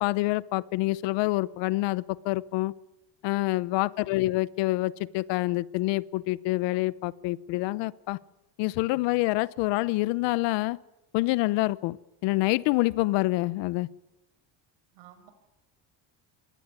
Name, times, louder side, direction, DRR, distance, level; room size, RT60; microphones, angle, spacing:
voice 1, 0.0-2.7 3.2-8.2 8.6-10.8 11.1-12.0 12.2-13.9, left 20 dB, 75° left, 19 dB, 1.0 m, -27 dB
voice 2, 3.9-4.3 14.9-15.3, right 11 dB, 70° right, 9 dB, 6.8 m, -55 dB
27.0 x 22.0 x 9.8 m, 0.93 s
cardioid pair, 175°, 43 cm